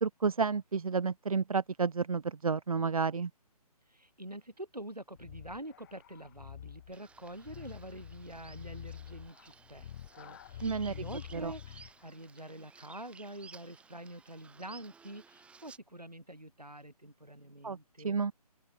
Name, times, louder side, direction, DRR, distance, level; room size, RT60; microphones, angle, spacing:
voice 1, 0.0-3.3 10.6-11.0 11.3-11.5 17.6-18.3, right 5 dB, 60° right, 0.7 m, -31 dB
voice 2, 3.9-18.2, right 1 dB, 85° right, 5.3 m, -46 dB
sound 1, 5.2-12.0, left 11 dB, 30° left, 1.9 m, -48 dB
Bird vocalization bird call bird song, 6.9-15.8, right 5 dB, 5° right, 5.5 m, -57 dB
figure-of-eight pair, 140°, 20 cm